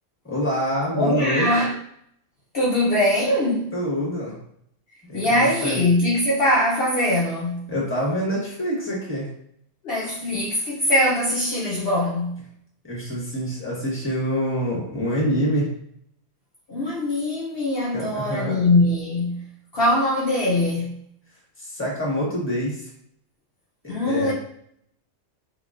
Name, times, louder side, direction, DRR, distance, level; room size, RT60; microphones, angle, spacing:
voice 1, 0.2-1.6 3.7-4.4 5.1-5.8 7.7-9.3 12.8-15.7 17.9-18.6 21.6-22.9 23.8-24.3, equal, 10° left, 1.3 m, -26 dB
voice 2, 0.9-1.7 2.5-3.7 5.1-7.6 9.8-12.4 16.7-19.4 19.7-20.9 23.9-24.3, left 1 dB, 55° left, 0.9 m, -22 dB
5.0 x 3.2 x 2.5 m
omnidirectional pair, 1.3 m